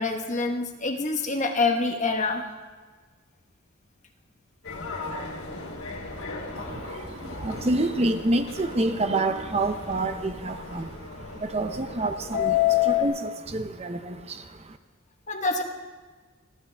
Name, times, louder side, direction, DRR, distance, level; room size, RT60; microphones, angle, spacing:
voice 1, 0.0-2.4 15.3-15.6, left 3 dB, 35° left, 3 dB, 1.3 m, -26 dB
Subway metro underground, 4.6-13.0, left 10 dB, 85° left, 3.3 m, -31 dB
voice 2, 6.6-14.8, right 2 dB, 30° right, 8 dB, 0.7 m, -28 dB
28.5 x 10.5 x 3.4 m, 1.4 s
head